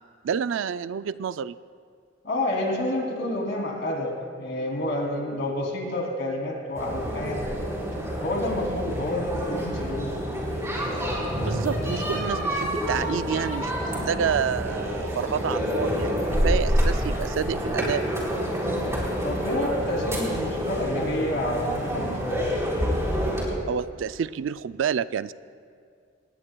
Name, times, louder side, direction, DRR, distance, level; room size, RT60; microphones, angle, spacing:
voice 1, 0.2-1.6 11.4-18.0 23.7-25.3, right 7 dB, 75° right, 15 dB, 0.4 m, -29 dB
voice 2, 2.2-7.5 8.2-10.2 19.2-22.5, left 1 dB, 65° left, -1 dB, 2.9 m, -29 dB
sound 1, 6.8-23.4, equal, 15° right, 3.9 m, -28 dB
26.5 x 19.5 x 2.3 m, 2.2 s
head